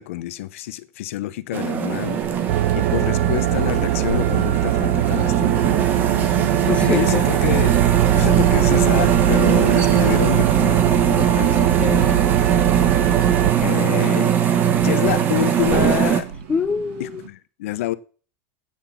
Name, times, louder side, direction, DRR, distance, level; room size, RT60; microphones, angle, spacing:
voice 1, 0.0-2.2 2.7-5.8 6.9-7.8 8.1-11.8 13.6-14.4 14.8-16.3 17.0-17.9, left 15 dB, 75° left, 0.8 m, -27 dB
sound 1, 1.5-16.2, right 8 dB, 25° right, 1.2 m, -20 dB
sound 2, 1.9-17.3, right 8 dB, 60° right, 2.0 m, -33 dB
sound 3, 2.5-13.5, right 13 dB, 85° right, 0.5 m, -21 dB
voice 2, 6.7-7.4 11.3-12.3 16.5-17.2, left 6 dB, 15° left, 0.4 m, -26 dB
8.9 x 5.9 x 7.1 m
supercardioid pair, 155°, 7 cm